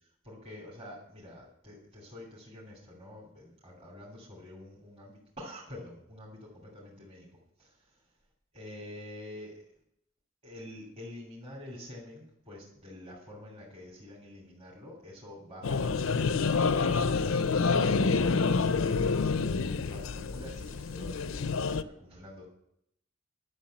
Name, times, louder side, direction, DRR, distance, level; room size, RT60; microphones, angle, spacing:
voice 1, 0.2-7.3 7.6-7.8 8.5-9.6 10.4-22.4, left 1 dB, 30° right, -4 dB, 2.9 m, -47 dB
sound 1, 15.6-21.8, left 4 dB, 75° left, 0.6 m, -27 dB
11.5 x 6.6 x 7.8 m, 0.74 s
head